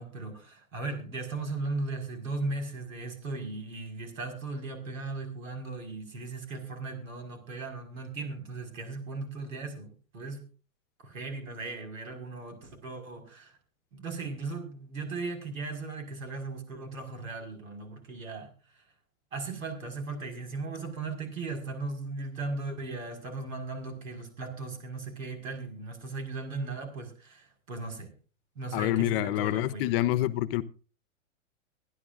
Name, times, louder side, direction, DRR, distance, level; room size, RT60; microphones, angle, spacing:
voice 1, 0.0-10.5 11.0-13.6 13.9-18.5 19.3-28.2 28.6-30.3, right 3 dB, 80° right, 5.4 m, -37 dB
voice 2, 28.7-30.6, left 15 dB, 45° left, 0.9 m, -27 dB
24.5 x 11.0 x 2.6 m
hypercardioid pair, 110°, 40 cm